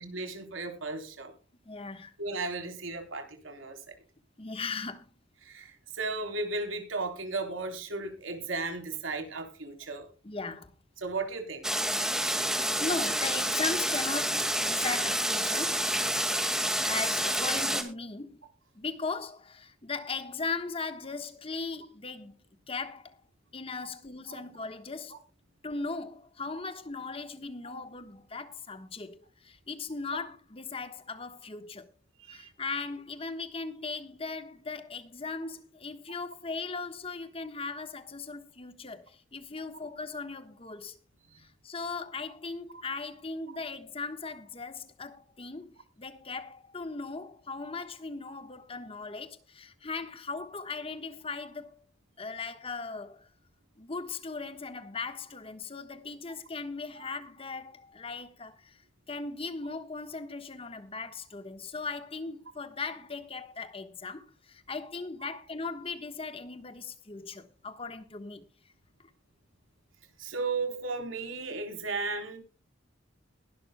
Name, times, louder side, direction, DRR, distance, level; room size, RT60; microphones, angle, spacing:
voice 1, 0.0-1.3 2.2-3.8 5.4-10.1 11.0-11.6 23.8-23.9 24.3-24.4 27.6-27.8 32.3-32.5 57.0-57.1 70.2-72.4, right 3 dB, 85° right, 3.6 m, -35 dB
voice 2, 1.6-2.1 4.4-5.1 10.2-10.7 12.6-15.9 16.8-18.4 18.7-22.3 22.7-23.2 23.5-25.2 25.6-31.9 32.3-41.0 41.4-51.8 52.2-53.3 53.8-58.8 59.1-68.5, left 4 dB, 30° left, 1.3 m, -38 dB
sound 1, 11.6-17.8, right 1 dB, 5° right, 1.9 m, -28 dB
21.0 x 12.0 x 2.2 m
head